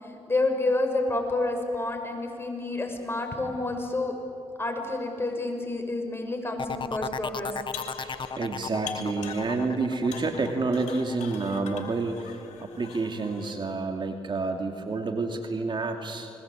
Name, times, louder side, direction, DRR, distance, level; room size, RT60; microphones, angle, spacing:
voice 1, 0.3-4.1 4.6-7.5, left 2 dB, 20° left, 3 dB, 6.7 m, -29 dB
sound 1, 6.6-12.2 12.6-13.1, left 5 dB, 45° left, 1.2 m, -36 dB
sound 2, 7.5-8.5 8.9-9.8 10.1-13.5, left 7 dB, 80° left, 3.7 m, -42 dB
voice 2, 7.9-16.3, right 3 dB, 40° right, 4 dB, 2.7 m, -29 dB
29.0 x 22.0 x 8.6 m, 2.6 s
supercardioid pair, 55°, 12 cm